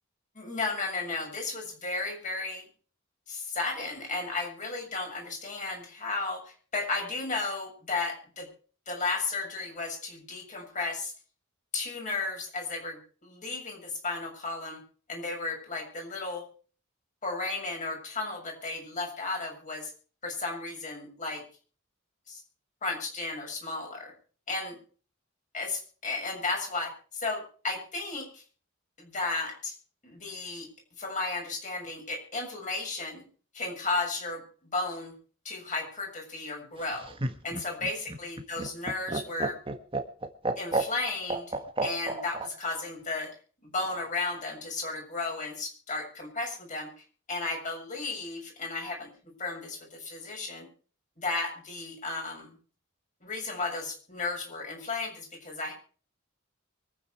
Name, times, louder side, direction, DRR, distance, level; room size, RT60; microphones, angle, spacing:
voice 1, 0.4-2.6 3.3-8.5 8.9-11.1 11.7-14.8 15.1-16.5 17.2-19.9 20.2-21.4 22.3-22.4 22.8-24.1 24.5-24.8 25.5-28.4 29.0-29.7 30.0-30.7 31.0-33.2 33.5-34.4 34.7-35.1 35.5-37.1 37.4-39.6 40.6-43.3 43.7-46.9 47.3-49.1 49.4-50.7 51.2-52.5 53.2-55.7, left 3 dB, 40° left, 1 dB, 6.9 m, -34 dB
Laughter, 36.8-42.5 43.8-44.4, right 2 dB, 25° right, 1.6 m, -32 dB
24.5 x 9.5 x 4.7 m, 0.41 s
head